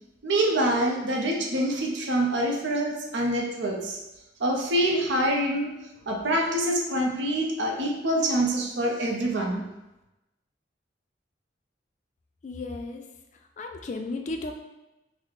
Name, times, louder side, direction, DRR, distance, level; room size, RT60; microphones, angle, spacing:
voice 1, 0.2-4.0 4.4-5.7 6.1-9.6, right 1 dB, 75° right, 1 dB, 0.6 m, -25 dB
voice 2, 12.4-13.1 13.6-14.5, left 3 dB, 40° left, 4 dB, 0.3 m, -34 dB
4.0 x 2.0 x 3.1 m, 0.97 s
head